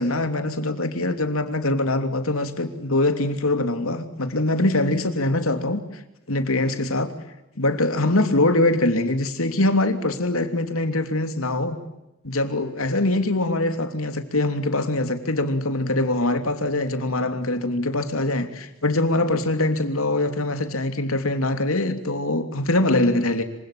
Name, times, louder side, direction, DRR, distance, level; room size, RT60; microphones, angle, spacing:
voice 1, 0.0-5.8 6.3-7.1 7.6-11.8 12.2-23.4, left 2 dB, 80° left, 3.2 m, -23 dB
26.5 x 25.5 x 8.7 m
head